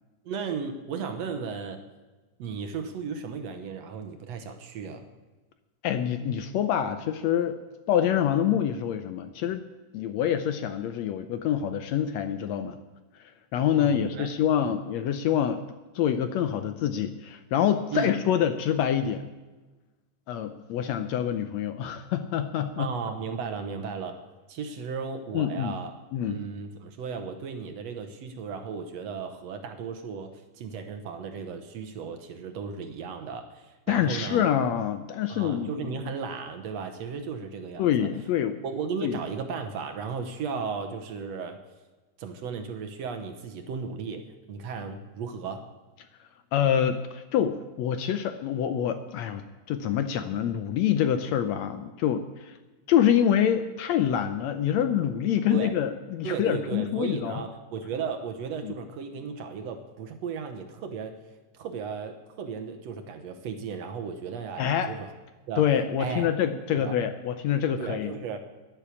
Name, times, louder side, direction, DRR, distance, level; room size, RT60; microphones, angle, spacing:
voice 1, 0.3-1.8 2.4-5.1 13.8-14.3 14.6-14.8 17.9-18.1 22.8-24.2 24.5-26.0 26.3-34.4 35.3-38.1 38.6-41.6 42.2-45.6 55.5-55.8 56.2-61.2 61.5-65.1 65.5-65.6 66.0-66.3 66.7-67.0 67.8-68.4, right 5 dB, 65° right, 6 dB, 2.0 m, -35 dB
voice 2, 5.8-7.6 7.9-9.6 9.9-12.8 13.5-15.6 16.0-19.2 20.3-22.9 25.3-25.8 26.1-26.4 33.9-36.0 37.8-38.6 39.0-39.2 46.5-52.6 52.9-57.4 58.6-58.7 64.6-64.9 65.6-68.1, left 9 dB, 75° left, 9 dB, 1.7 m, -26 dB
10.5 x 10.5 x 8.3 m, 1.2 s
omnidirectional pair, 3.5 m